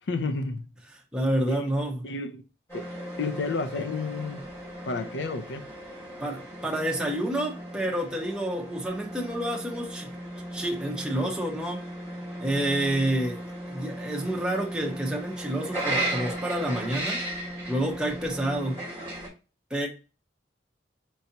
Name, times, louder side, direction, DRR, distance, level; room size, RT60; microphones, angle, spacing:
voice 1, 0.1-0.7 1.5-1.6 2.0-2.4 2.7-2.9 3.2-4.4 4.8-5.7, left 3 dB, 70° left, 0.5 m, -31 dB
voice 2, 1.1-2.1 6.2-10.2 10.5-11.8 12.4-17.2 17.7-18.9 19.7-19.9, right 1 dB, 5° right, 0.9 m, -29 dB
sound 1, 2.7-19.3, right 1 dB, 15° left, 2.5 m, -36 dB
4.6 x 4.1 x 2.8 m
head